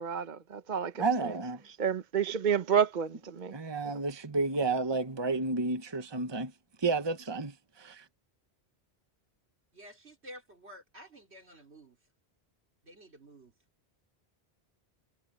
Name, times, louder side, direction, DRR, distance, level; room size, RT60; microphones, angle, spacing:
voice 1, 0.0-1.3 1.8-3.5, right 8 dB, 50° right, 0.9 m, -30 dB
voice 2, 1.0-1.8 3.5-6.5 6.8-8.0, right 3 dB, 25° right, 1.1 m, -31 dB
voice 3, 9.7-12.0 12.8-13.5, equal, 85° right, 4.4 m, -51 dB
omnidirectional pair, 1.1 m